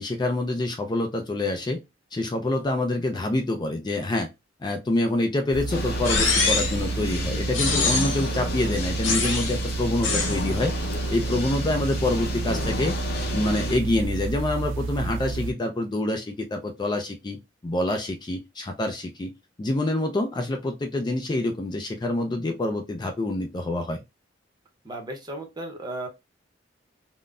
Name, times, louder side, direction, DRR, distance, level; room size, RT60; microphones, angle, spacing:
voice 1, 0.0-1.8 2.1-4.3 4.6-10.7 11.1-12.9 13.3-17.4 17.6-24.0, left 2 dB, 25° left, 0.4 m, -26 dB
sound 1, 5.5-15.5, right 3 dB, 85° right, 0.4 m, -30 dB
sound 2, 5.7-13.8, left 3 dB, 55° left, 0.7 m, -33 dB
sound 3, 6.0-6.8 7.5-8.3 9.0-9.6 10.0-10.4, left 4 dB, 85° left, 0.9 m, -24 dB
voice 2, 24.8-26.1, right 1 dB, 20° right, 0.7 m, -35 dB
3.6 x 2.0 x 2.3 m
head